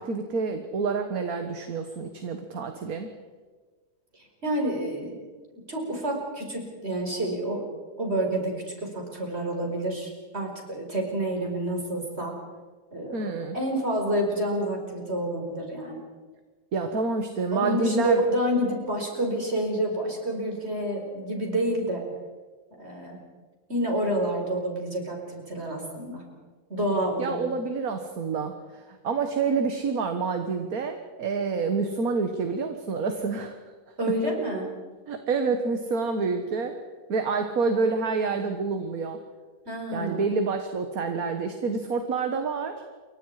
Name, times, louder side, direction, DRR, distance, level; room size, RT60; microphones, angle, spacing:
voice 1, 0.0-3.1 13.1-13.6 16.7-18.2 27.2-33.6 35.1-36.7 37.1-39.2 39.9-42.8, right 4 dB, 60° right, 6 dB, 1.9 m, -28 dB
voice 2, 4.4-5.2 5.7-7.7 8.0-8.6 8.8-12.3 12.9-16.0 17.5-22.0 22.8-23.2 23.7-26.2 26.7-27.4 34.0-34.7 38.4-38.5 39.7-40.3, right 1 dB, 40° right, 1 dB, 5.5 m, -28 dB
28.5 x 24.0 x 4.9 m, 1.4 s
omnidirectional pair, 1.7 m